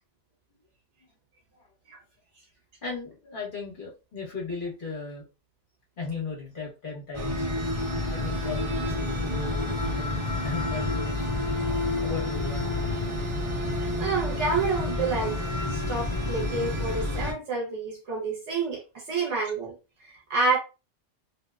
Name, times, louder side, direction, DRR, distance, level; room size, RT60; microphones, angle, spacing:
voice 1, 2.8-5.3 6.0-7.5 8.1-11.3 12.0-12.7 19.1-19.2, left 4 dB, 50° left, 1.1 m, -37 dB
sound 1, 7.1-17.3, left 2 dB, 30° right, 0.8 m, -29 dB
voice 2, 13.7-15.4 15.7-19.7 20.0-20.6, right 4 dB, 75° right, 1.0 m, -29 dB
2.6 x 2.0 x 2.3 m
omnidirectional pair, 1.2 m